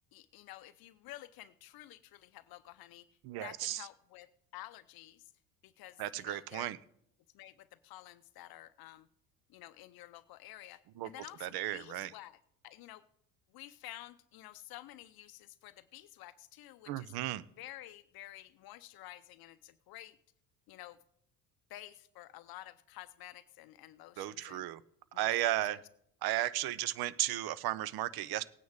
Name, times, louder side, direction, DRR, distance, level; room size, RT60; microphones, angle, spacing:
voice 1, 0.1-3.1 3.4-5.2 5.6-6.7 7.3-9.1 9.5-12.4 12.6-13.0 13.5-17.1 17.6-20.2 20.7-21.0 21.7-24.7 25.1-25.6, left 15 dB, 50° left, 0.6 m, -51 dB
voice 2, 3.2-3.9 6.0-6.8 11.0-11.1 11.4-12.1 16.9-17.4 24.2-24.8 25.1-25.8 26.2-28.4, right 14 dB, 50° right, 0.7 m, -34 dB
17.5 x 9.3 x 3.5 m
hypercardioid pair, 60°, 48 cm